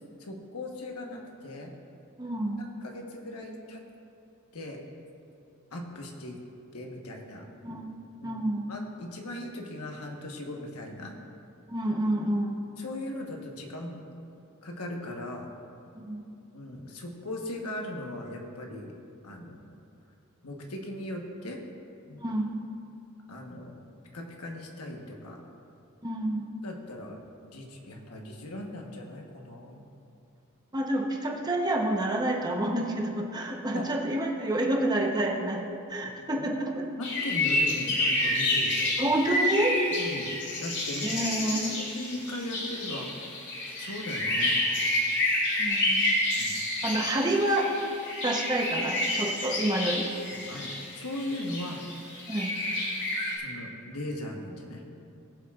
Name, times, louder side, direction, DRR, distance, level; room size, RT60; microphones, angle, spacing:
voice 1, 0.2-1.7 2.6-3.8 4.5-4.8 5.7-6.4 6.7-7.5 8.2-8.4 8.7-11.1 12.8-14.0 14.6-15.5 16.5-18.9 19.2-19.6 20.4-21.6 22.1-22.3 23.3-23.8 24.1-25.4 26.6-27.2 27.5-29.9 33.7-33.8 36.0-36.1 36.4-36.5 37.0-38.9 40.0-40.3 40.6-41.1 41.7-43.3 43.8-44.6 46.4-46.6 50.3-51.8 53.4-54.8, left 1 dB, 85° left, 1 dB, 1.2 m, -38 dB
voice 2, 2.2-2.6 7.6-7.9 8.2-8.7 11.7-12.6 16.0-16.3 22.2-22.6 26.0-26.5 30.7-36.9 39.0-39.8 41.0-41.7 45.6-46.1 46.8-47.7 48.2-50.1 52.3-52.5, right 1 dB, 20° right, 0 dB, 0.9 m, -28 dB
sound 1, 37.0-53.4, left 1 dB, 55° left, 2.3 m, -29 dB
19.5 x 7.5 x 2.5 m, 2.7 s
head